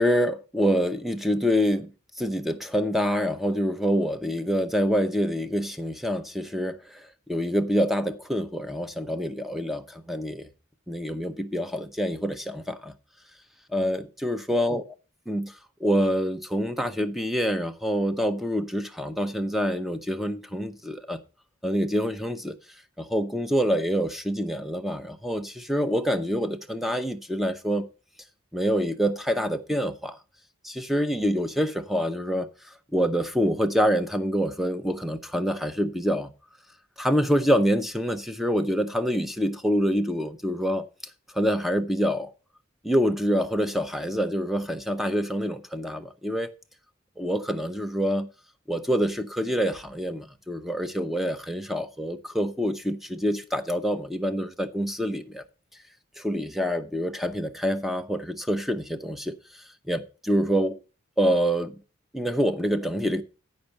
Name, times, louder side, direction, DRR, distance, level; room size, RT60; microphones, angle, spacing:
voice 1, 0.0-1.9 2.2-7.0 7.3-10.5 10.9-12.9 13.7-14.8 15.3-15.5 15.8-21.2 21.6-22.6 23.0-27.9 28.5-30.2 30.6-32.5 32.9-36.3 37.0-40.9 41.3-42.3 42.8-46.5 47.2-48.3 48.7-55.4 56.2-59.4 59.9-60.8 61.2-61.8 62.1-63.2, equal, ahead, 0.6 m, -26 dB
10.0 x 5.3 x 6.6 m
head